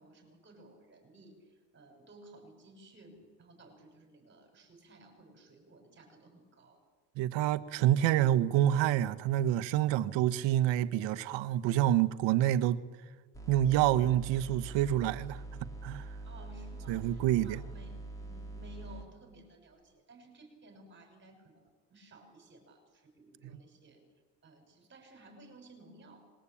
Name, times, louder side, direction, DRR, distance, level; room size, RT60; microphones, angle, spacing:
voice 1, 0.0-1.4 1.7-6.8 16.2-24.0 24.4-26.3, right 1 dB, 25° right, 6.3 m, -56 dB
voice 2, 7.2-12.8 13.5-15.4 15.8-16.1 16.9-17.6 23.4-23.6, right 12 dB, 75° right, 1.3 m, -27 dB
sound 1, 13.3-19.1, right 2 dB, 5° left, 3.6 m, -44 dB
25.5 x 21.5 x 8.7 m
cardioid pair, 160°, 44 cm